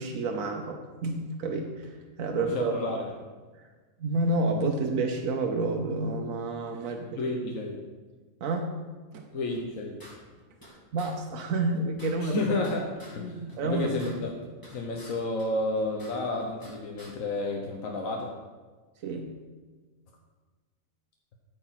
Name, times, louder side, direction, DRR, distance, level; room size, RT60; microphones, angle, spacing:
voice 1, 0.0-2.7 4.0-7.2 8.4-8.8 9.1-9.3 10.9-12.5 13.6-14.2 19.0-19.4, right 2 dB, 75° right, 3 dB, 1.2 m, -29 dB
voice 2, 2.4-3.1 7.2-7.8 9.3-10.0 12.2-12.8 13.1-14.3 14.7-18.3, left 2 dB, 75° left, 0 dB, 1.4 m, -31 dB
sound 1, 9.5-10.7 11.0-11.1 11.4-11.5 11.7-13.2 13.5-15.1 15.4-16.7 17.0-17.1, equal, 15° left, 2.3 m, -50 dB
13.0 x 5.0 x 5.8 m, 1.4 s
omnidirectional pair, 1.4 m